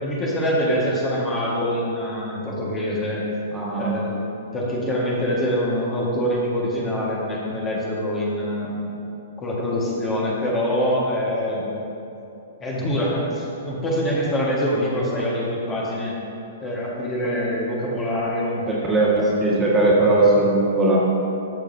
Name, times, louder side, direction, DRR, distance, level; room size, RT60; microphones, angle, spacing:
voice 1, 0.0-3.2 3.8-4.2 4.5-8.9 9.4-11.8 12.6-16.2 16.6-18.7, equal, 20° left, -5 dB, 1.7 m, -24 dB
voice 2, 3.5-4.0 18.7-21.0, right 2 dB, 15° right, -6 dB, 1.7 m, -19 dB
13.0 x 7.0 x 2.8 m, 2.8 s
figure-of-eight pair, 115°, 0 cm